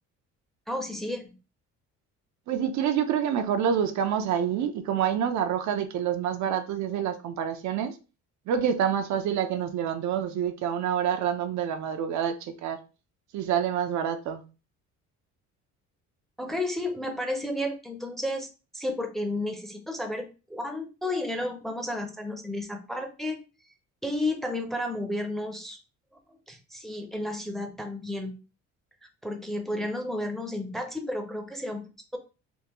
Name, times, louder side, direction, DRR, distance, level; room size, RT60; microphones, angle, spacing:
voice 1, 0.7-1.4 16.4-18.5 18.7-23.4 24.0-25.8 26.5-28.4 29.2-31.8, left 1 dB, ahead, 0.6 m, -32 dB
voice 2, 2.5-8.0 8.5-12.8 13.3-14.4, right 8 dB, 65° right, 0.6 m, -27 dB
3.5 x 2.5 x 2.9 m
cardioid pair, 115°, 31 cm